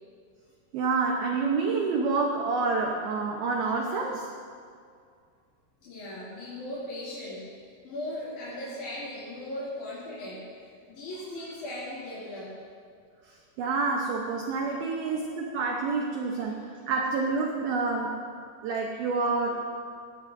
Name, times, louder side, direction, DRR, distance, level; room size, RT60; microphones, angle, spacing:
voice 1, 0.7-4.3 13.6-16.6 16.9-18.2 18.6-19.6, right 4 dB, 70° right, 0 dB, 2.4 m, -28 dB
voice 2, 5.8-12.5 14.7-14.8 16.2-17.0, left 1 dB, 45° left, -10 dB, 3.7 m, -39 dB
21.5 x 17.5 x 2.7 m, 2.2 s
omnidirectional pair, 5.4 m